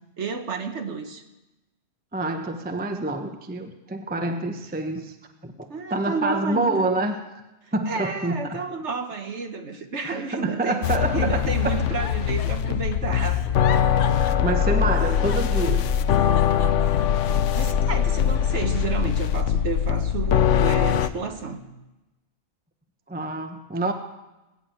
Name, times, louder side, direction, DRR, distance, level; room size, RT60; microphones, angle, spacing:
voice 1, 0.2-1.2 5.7-6.9 7.6-13.4 17.5-21.7, right 4 dB, 50° right, 6 dB, 1.3 m, -31 dB
voice 2, 2.1-5.1 5.4-7.2 7.7-8.6 10.1-11.8 14.1-15.8 23.1-23.9, right 2 dB, 10° right, 6 dB, 0.7 m, -27 dB
sound 1, 10.8-21.1, left 9 dB, 60° left, 0.8 m, -22 dB
Giggle, 11.5-17.9 18.3-19.2 19.7-20.8 21.3-21.7, left 7 dB, 75° left, 1.5 m, -41 dB
19.5 x 7.9 x 8.8 m, 1.0 s
omnidirectional pair, 1.7 m